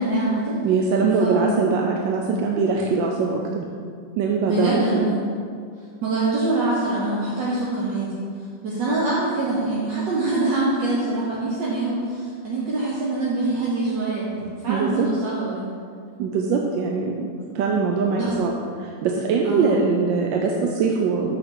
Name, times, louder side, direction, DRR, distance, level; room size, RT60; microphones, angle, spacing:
voice 1, 0.0-0.6 1.2-1.7 4.4-5.2 6.0-8.2 8.6-15.7 17.4-17.6 18.1-18.3 19.4-19.8, right 2 dB, 70° right, -6 dB, 1.6 m, -24 dB
voice 2, 0.6-3.7 4.2-5.1 14.7-15.1 16.2-17.2 17.5-18.5 18.8-21.4, right 5 dB, 85° right, 0 dB, 1.3 m, -22 dB
6.4 x 4.2 x 6.0 m, 2.2 s
omnidirectional pair, 2.0 m